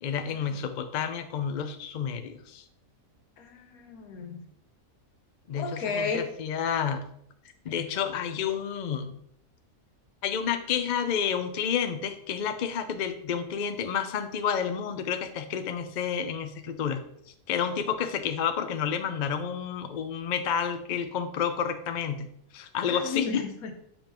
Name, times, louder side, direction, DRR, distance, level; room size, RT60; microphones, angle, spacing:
voice 1, 0.0-2.6 5.5-7.1 7.6-9.2 10.2-17.0 17.5-22.3 22.5-23.4, left 7 dB, 60° left, 8 dB, 0.5 m, -30 dB
voice 2, 3.4-4.4 5.5-6.3 22.9-23.7, left 4 dB, 90° left, 5 dB, 1.4 m, -33 dB
7.2 x 5.2 x 3.0 m, 0.71 s
omnidirectional pair, 1.5 m